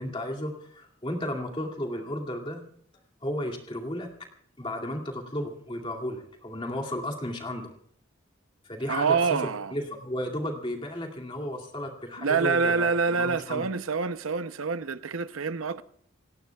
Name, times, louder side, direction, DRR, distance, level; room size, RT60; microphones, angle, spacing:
voice 1, 0.0-2.6 3.2-4.1 4.6-7.7 8.6-9.2 9.7-12.9 13.2-13.7, left 1 dB, 25° left, 2.3 m, -33 dB
voice 2, 8.8-9.7 12.2-15.8, right 5 dB, 80° right, 0.7 m, -26 dB
27.5 x 18.0 x 2.3 m
head